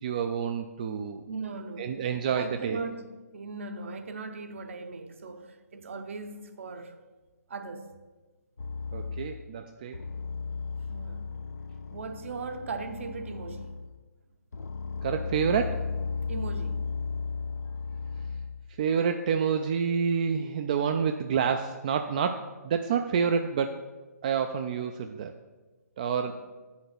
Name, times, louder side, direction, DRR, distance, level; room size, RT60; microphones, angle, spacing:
voice 1, 0.0-1.2 1.8-2.8 8.9-10.0 15.0-15.9 18.8-23.8 24.2-25.3 26.0-26.3, right 6 dB, 30° right, 0.3 m, -28 dB
voice 2, 1.3-1.9 2.4-3.0 3.3-6.9 7.5-7.9 10.8-11.4 11.9-13.7 16.3-16.9 17.6-17.7 26.3-26.4, right 4 dB, 50° right, 0.8 m, -38 dB
sound 1, 8.6-9.5 9.9-14.0 14.5-18.7, left 4 dB, 75° left, 0.4 m, -35 dB
7.7 x 5.6 x 5.9 m
figure-of-eight pair, 145°, 9 cm